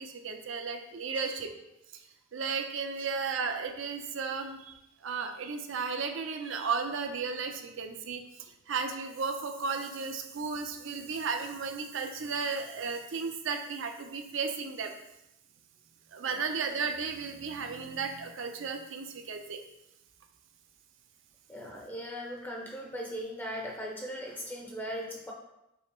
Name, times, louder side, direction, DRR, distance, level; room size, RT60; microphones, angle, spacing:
voice 1, 0.0-1.5 1.9-2.0 2.3-14.9 16.1-19.6, right 5 dB, 65° right, 6 dB, 0.5 m, -34 dB
voice 2, 21.5-25.3, equal, 10° left, -1 dB, 0.5 m, -39 dB
5.4 x 2.0 x 4.4 m, 0.88 s
head